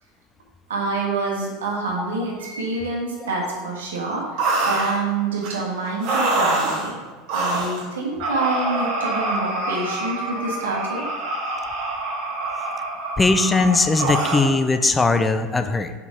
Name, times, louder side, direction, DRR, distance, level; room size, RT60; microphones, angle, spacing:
voice 1, 0.7-4.4 4.6-7.0 7.3-11.0, right 3 dB, 80° right, -3 dB, 1.6 m, -26 dB
sound 1, 4.4-5.0 5.4-5.5 6.0-6.9 7.3-7.8 8.2-14.5, right 2 dB, 60° right, 2.1 m, -25 dB
voice 2, 13.2-15.9, left 3 dB, 15° left, 9 dB, 0.5 m, -19 dB
5.3 x 5.1 x 4.9 m, 1.4 s
hypercardioid pair, 85°, 0 cm